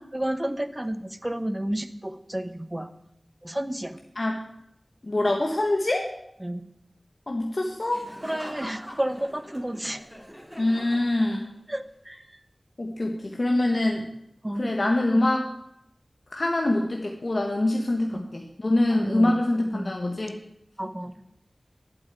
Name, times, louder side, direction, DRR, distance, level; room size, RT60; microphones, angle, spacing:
voice 1, 0.1-2.9 3.4-4.0 6.4-6.7 8.2-10.0 11.7-12.2 14.4-14.7 18.1-18.2 18.9-19.4 19.7-19.9 20.8-21.1, right 1 dB, 20° right, 11 dB, 0.9 m, -31 dB
voice 2, 5.0-6.1 7.3-8.0 10.6-11.5 12.8-14.0 14.6-15.5 16.3-20.4, left 1 dB, 55° left, 1 dB, 1.3 m, -24 dB
Laughter, 7.9-11.8, equal, ahead, 2.5 m, -43 dB
8.9 x 7.7 x 9.1 m, 0.79 s
wide cardioid pair, 60°, 0 cm